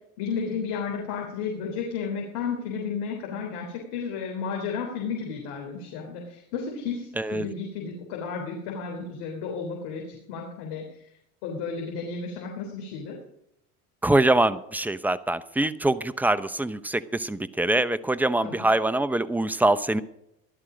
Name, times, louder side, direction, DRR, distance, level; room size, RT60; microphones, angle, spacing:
voice 1, 0.2-11.0 11.4-13.2 18.4-18.5, left 5 dB, 65° left, 0 dB, 3.7 m, -33 dB
voice 2, 7.2-7.5 14.0-20.0, right 2 dB, 5° right, 13 dB, 0.8 m, -24 dB
16.0 x 12.0 x 5.1 m, 0.79 s
hypercardioid pair, 85°, 44 cm